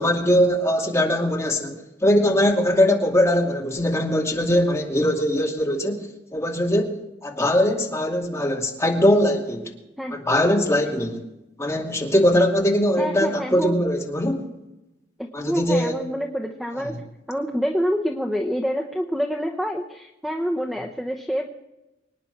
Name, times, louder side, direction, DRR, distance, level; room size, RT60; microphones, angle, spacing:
voice 1, 0.0-9.7 10.1-11.2 11.6-14.5 15.3-15.9, left 1 dB, 15° left, -1 dB, 2.5 m, -21 dB
voice 2, 13.0-13.8 15.2-16.9 17.3-21.5, equal, ahead, 1 dB, 0.9 m, -27 dB
25.0 x 10.0 x 4.6 m, 0.99 s
head